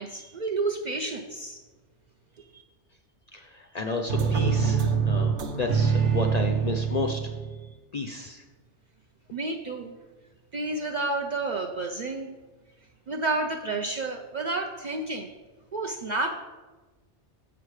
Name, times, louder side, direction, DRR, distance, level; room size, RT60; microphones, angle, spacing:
voice 1, 0.0-1.6 2.4-2.6 9.3-10.0 10.5-12.3 13.1-15.3 15.7-16.3, right 3 dB, 55° right, 2 dB, 0.5 m, -30 dB
voice 2, 3.3-7.2 7.9-8.4, left 3 dB, 50° left, 4 dB, 0.5 m, -32 dB
sound 1, 4.1-7.7, right 6 dB, 75° right, 1.0 m, -25 dB
7.4 x 6.0 x 4.8 m, 1.3 s
omnidirectional pair, 1.2 m